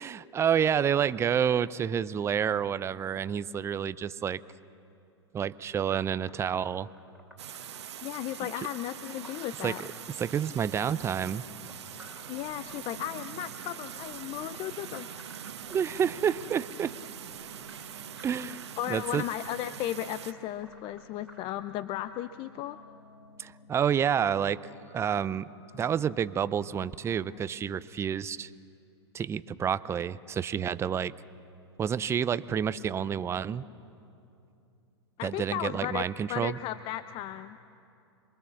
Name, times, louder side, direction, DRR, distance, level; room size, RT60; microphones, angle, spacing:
voice 1, 0.0-4.4 5.3-6.9 8.4-8.5 9.6-9.9 10.2-11.4 15.7-16.9 18.2-19.2 23.4-24.6 24.9-28.5 29.1-31.1 31.8-33.6 35.2-36.6, right 8 dB, 20° right, 17 dB, 0.5 m, -29 dB
sound 1, 6.0-21.5, equal, 5° left, 3.2 m, -55 dB
sound 2, 7.4-20.3, right 9 dB, 75° right, 1.2 m, -43 dB
voice 2, 8.0-9.8 12.3-15.3 18.8-22.8 35.2-36.0 36.3-37.6, left 13 dB, 35° left, 13 dB, 0.6 m, -35 dB
sound 3, 9.9-27.4, left 4 dB, 65° left, 1.8 m, -57 dB
27.0 x 23.0 x 7.1 m, 2.7 s
hypercardioid pair, 105°, 15 cm